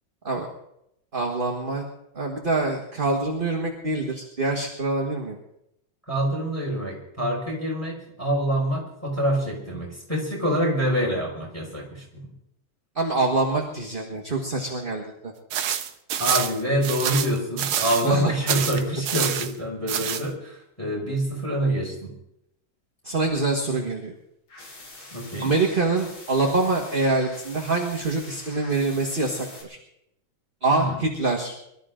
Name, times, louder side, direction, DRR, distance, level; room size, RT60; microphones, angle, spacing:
voice 1, 1.1-1.8 2.1-5.4 12.9-15.3 18.0-18.3 23.0-24.1 25.4-29.8 30.6-31.6, right 3 dB, 30° right, 1 dB, 1.6 m, -25 dB
voice 2, 6.1-12.3 16.2-22.1 25.1-25.5 30.7-31.0, equal, 5° left, -1 dB, 5.7 m, -26 dB
sound 1, 15.5-18.2 18.5-19.5 19.9-20.2, right 9 dB, 85° right, 1.8 m, -27 dB
sound 2, 24.5-29.6, left 2 dB, 80° left, 4.1 m, -44 dB
23.5 x 13.0 x 3.8 m, 0.80 s
omnidirectional pair, 2.2 m